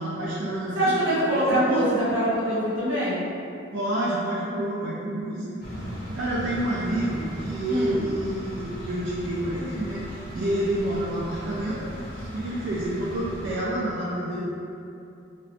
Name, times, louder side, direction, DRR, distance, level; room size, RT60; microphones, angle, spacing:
voice 1, 0.0-0.9 1.3-1.8 3.7-5.6 6.1-11.8 12.3-14.5, right 1 dB, 65° right, -8 dB, 0.3 m, -28 dB
voice 2, 0.7-3.2 7.7-8.0, right 1 dB, 85° right, -9 dB, 0.9 m, -23 dB
sound 1, 5.6-13.5, equal, 50° left, 0.6 m, -38 dB
2.6 x 2.1 x 2.5 m, 2.7 s
head